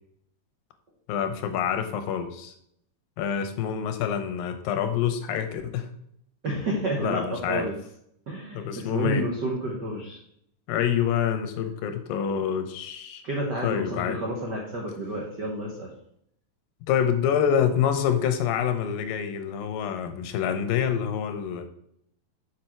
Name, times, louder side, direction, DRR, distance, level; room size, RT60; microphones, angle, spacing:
voice 1, 1.1-2.5 3.2-5.9 7.0-7.7 8.5-9.3 10.7-13.2 13.6-14.2 16.9-21.7, left 8 dB, 85° left, 8 dB, 2.5 m, -26 dB
voice 2, 6.4-7.8 8.3-10.2 13.2-15.9, right 1 dB, 85° right, -2 dB, 0.9 m, -30 dB
7.3 x 5.1 x 4.5 m, 0.71 s
omnidirectional pair, 4.1 m